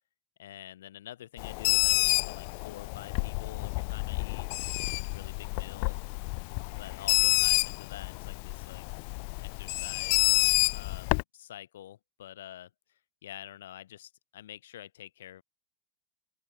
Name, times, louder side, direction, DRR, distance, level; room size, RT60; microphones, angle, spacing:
voice 1, 0.4-4.5 4.8-6.0 6.7-8.9 9.4-10.3 10.7-12.7 13.2-15.4, left 12 dB, 85° left, 6.5 m, -47 dB
Bird, 1.4-11.2, left 39 dB, 60° left, 0.3 m, -29 dB
open air
hypercardioid pair, 115°, 0 cm